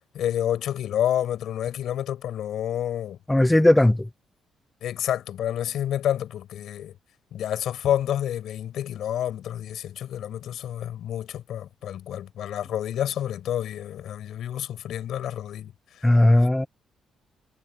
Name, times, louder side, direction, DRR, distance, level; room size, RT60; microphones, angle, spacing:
voice 1, 0.1-3.2 4.8-6.9 7.3-16.0, left 11 dB, 75° left, 5.7 m, -29 dB
voice 2, 3.3-4.1 16.0-16.7, left 1 dB, 10° left, 0.9 m, -17 dB
cardioid pair, 100°, 0 cm